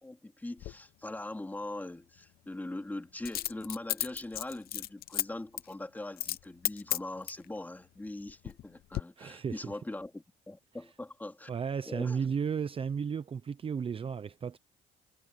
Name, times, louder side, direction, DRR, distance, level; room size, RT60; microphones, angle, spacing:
voice 1, 0.0-11.5 11.9-12.2, left 2 dB, 10° left, 3.1 m, -41 dB
Coin (dropping), 0.6-0.7 3.2-5.2 5.6-5.7 6.2-6.4 6.6-7.4 8.1-8.6 8.9-9.0, left 14 dB, 65° left, 0.8 m, -33 dB
voice 2, 9.2-9.7 11.5-14.6, right 6 dB, 35° right, 0.8 m, -34 dB
cardioid pair, 110°, 17 cm